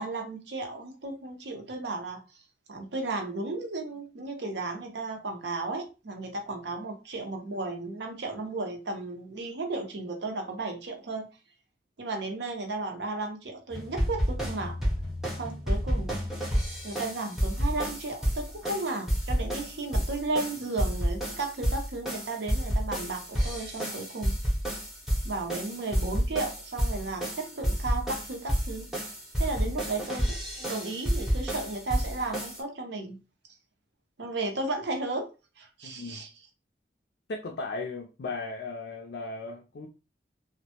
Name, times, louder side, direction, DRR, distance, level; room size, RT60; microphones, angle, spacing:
voice 1, 0.0-2.2 2.7-11.3 12.0-14.8 15.3-16.2 16.8-24.3 25.2-28.9 29.4-33.2 34.2-35.3 35.6-36.3, right 3 dB, 75° right, 0.6 m, -34 dB
sound 1, 13.7-32.6, equal, ahead, 0.6 m, -30 dB
voice 2, 35.8-36.2 37.3-39.9, left 3 dB, 65° left, 0.4 m, -36 dB
2.1 x 2.0 x 2.8 m
head